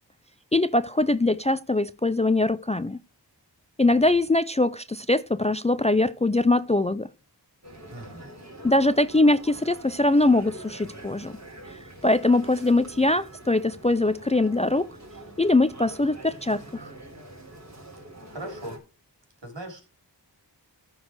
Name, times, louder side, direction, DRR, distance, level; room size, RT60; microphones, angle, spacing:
voice 1, 0.5-3.0 3.8-7.1 8.6-11.4 11.7-14.9 15.4-16.9, left 2 dB, 15° left, 0.4 m, -22 dB
sound 1, 7.6-18.8, right 1 dB, 40° right, 3.7 m, -45 dB
voice 2, 7.9-8.3 18.3-18.8 19.4-19.9, right 1 dB, 75° right, 3.6 m, -38 dB
14.0 x 4.6 x 4.5 m
wide cardioid pair, 75°, 43 cm